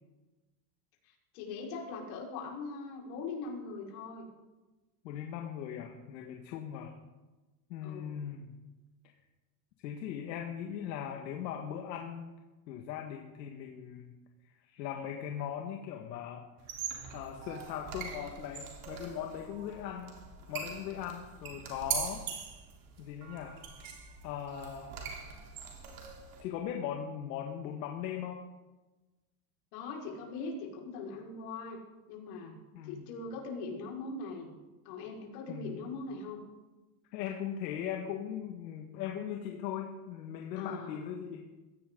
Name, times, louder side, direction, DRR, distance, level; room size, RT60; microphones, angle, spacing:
voice 1, 1.0-4.3 7.8-8.2 29.7-31.8 32.1-32.6 32.8-34.5 34.9-36.4 40.5-41.2, left 3 dB, 65° left, -2 dB, 5.3 m, -41 dB
voice 2, 5.0-6.9 7.7-8.5 9.8-12.3 12.7-14.1 14.6-16.4 17.1-20.2 20.5-22.3 23.0-23.6 24.2-25.0 26.4-28.4 32.7-33.0 35.5-35.8 37.1-41.5, left 9 dB, 85° left, 2 dB, 1.9 m, -39 dB
sound 1, 16.6-26.4, right 6 dB, 40° right, 3.4 m, -42 dB
22.0 x 16.5 x 3.9 m, 1.2 s
supercardioid pair, 150°, 50 cm